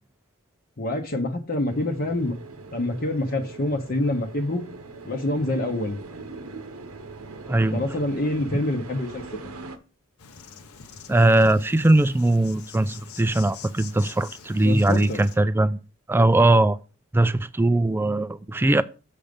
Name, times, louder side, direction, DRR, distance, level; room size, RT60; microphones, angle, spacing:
voice 1, 0.8-2.3 2.7-4.6 5.0-6.0 7.7-9.5 14.6-15.2, left 1 dB, 45° left, 0.9 m, -26 dB
sound 1, 1.7-9.8, right 3 dB, 85° right, 1.0 m, -41 dB
voice 2, 7.5-7.8 11.1-15.8 16.1-16.8 17.1-18.8, right 2 dB, 10° right, 0.3 m, -20 dB
Insect, 10.2-15.4, left 6 dB, 90° left, 0.9 m, -44 dB
7.0 x 5.1 x 5.2 m
head